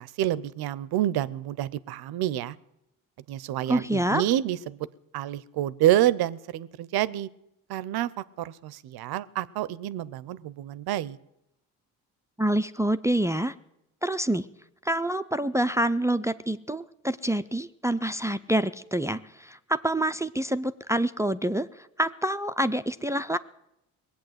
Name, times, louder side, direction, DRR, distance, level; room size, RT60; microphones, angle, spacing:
voice 1, 0.0-2.6 3.3-4.9 5.1-7.3 7.7-11.2, right 13 dB, 70° right, 20 dB, 0.7 m, -28 dB
voice 2, 3.7-4.2 12.4-13.5 14.0-14.5 14.8-23.4, right 1 dB, 10° right, 12 dB, 0.5 m, -27 dB
19.5 x 8.3 x 7.9 m, 0.85 s
supercardioid pair, 60°, 39 cm